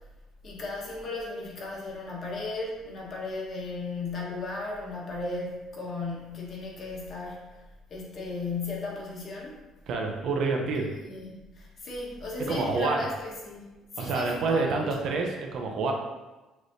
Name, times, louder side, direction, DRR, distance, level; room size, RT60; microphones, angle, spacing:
voice 1, 0.4-7.6 7.9-9.6 11.0-15.1, left 3 dB, 45° left, -3 dB, 1.3 m, -36 dB
voice 2, 9.9-10.9 12.5-13.0 14.0-15.9, right 3 dB, 65° right, 1 dB, 0.7 m, -27 dB
6.1 x 3.2 x 2.7 m, 1.1 s
cardioid pair, 115°, 0 cm